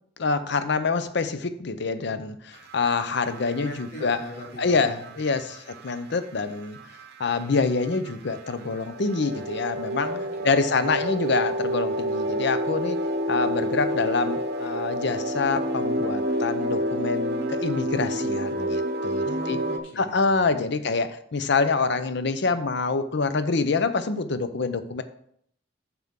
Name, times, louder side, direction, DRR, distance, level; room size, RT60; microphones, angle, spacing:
voice 1, 0.2-4.2 4.6-6.8 7.2-10.1 10.4-13.0 13.3-19.6 20.0-25.0, left 4 dB, 65° left, 11 dB, 0.7 m, -26 dB
sound 1, 2.5-19.8, equal, 55° right, 0.9 m, -29 dB
voice 2, 3.6-5.4 10.0-10.5 10.8-10.9 19.2-20.9, equal, 85° left, -3 dB, 2.8 m, -42 dB
9.4 x 6.1 x 3.6 m, 0.68 s
head